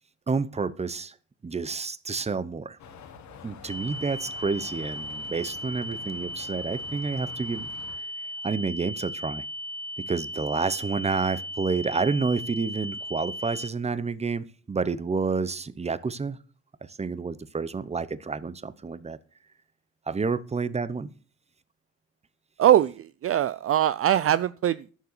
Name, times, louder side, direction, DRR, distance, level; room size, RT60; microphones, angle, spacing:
voice 1, 0.3-1.1 1.4-2.8 3.4-9.4 10.0-16.4 16.9-19.2 20.1-21.1, right 4 dB, 20° right, 0.9 m, -29 dB
sound 1, 2.8-8.0, left 6 dB, 70° left, 1.7 m, -47 dB
sound 2, 3.7-13.7, equal, 5° left, 0.7 m, -37 dB
voice 2, 22.6-24.9, right 11 dB, 50° right, 0.5 m, -22 dB
11.0 x 7.1 x 6.7 m
cardioid pair, 90°, 30 cm